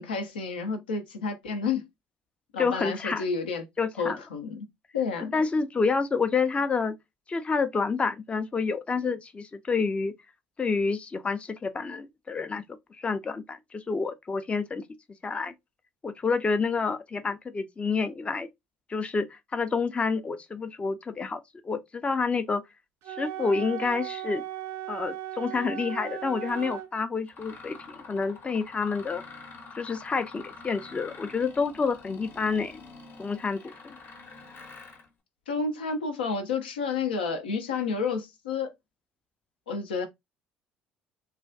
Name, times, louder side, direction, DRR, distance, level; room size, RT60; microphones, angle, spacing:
voice 1, 0.0-1.9 2.5-3.6 4.0-4.6 4.9-5.3 35.5-38.7 39.7-40.1, left 5 dB, 85° left, 0.5 m, -30 dB
voice 2, 2.6-3.2 3.8-4.2 5.3-6.9 7.3-10.1 10.6-12.6 13.0-14.8 15.2-15.5 16.0-18.5 18.9-22.6 23.1-24.4 24.9-29.2 29.8-32.8 33.2-34.0, left 4 dB, 25° left, 0.4 m, -28 dB
Wind instrument woodwind instrument, 23.0-26.9, right 12 dB, 60° right, 0.3 m, -37 dB
Mechanisms, 25.8-25.9 26.4-26.8 27.3-35.1, left 4 dB, 45° left, 0.7 m, -47 dB
2.3 x 2.2 x 2.4 m
hypercardioid pair, 60°, 5 cm